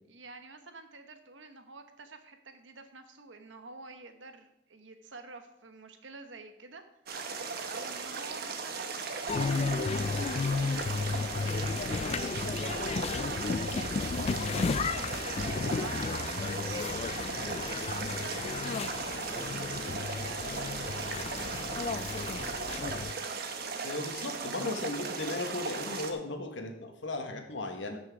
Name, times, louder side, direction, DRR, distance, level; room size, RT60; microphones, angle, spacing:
voice 1, 0.1-6.8 7.6-13.9 14.8-22.9, right 4 dB, 85° right, 7 dB, 1.2 m, -49 dB
sound 1, 7.1-26.1, right 4 dB, 55° right, 1.1 m, -37 dB
sound 2, 9.3-23.1, left 4 dB, 35° left, 0.3 m, -33 dB
voice 2, 23.8-28.0, left 2 dB, 80° left, 4 dB, 1.5 m, -36 dB
13.0 x 6.2 x 4.9 m, 0.80 s
head